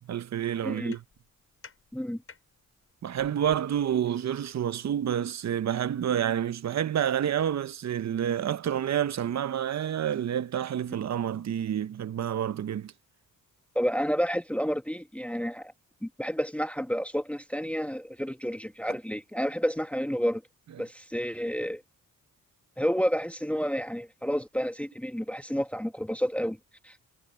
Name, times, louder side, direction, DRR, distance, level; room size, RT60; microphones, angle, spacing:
voice 1, 0.1-1.0 3.0-12.9, right 9 dB, 50° right, 0.8 m, -29 dB
voice 2, 0.6-1.0 1.9-2.2 13.7-15.7 16.0-20.4 20.8-21.8 22.8-26.6 26.8-27.0, equal, 5° left, 1.4 m, -30 dB
sound 1, 0.8-6.8, left 5 dB, 40° left, 7.5 m, -58 dB
cardioid pair, 105°, 34 cm